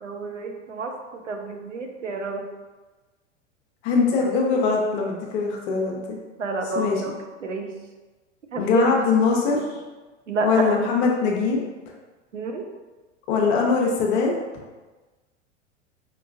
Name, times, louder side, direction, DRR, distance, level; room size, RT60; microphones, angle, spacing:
voice 1, 0.0-2.4 6.4-7.1 7.4-7.7 8.5-8.9 10.3-10.8 12.3-12.6, right 3 dB, 80° right, 3 dB, 0.6 m, -29 dB
voice 2, 3.8-6.2 6.7-7.0 8.6-9.8 10.4-11.6 13.3-14.3, left 4 dB, 45° left, -1 dB, 0.7 m, -22 dB
4.5 x 2.9 x 2.5 m, 1.2 s
figure-of-eight pair, 80°, 36 cm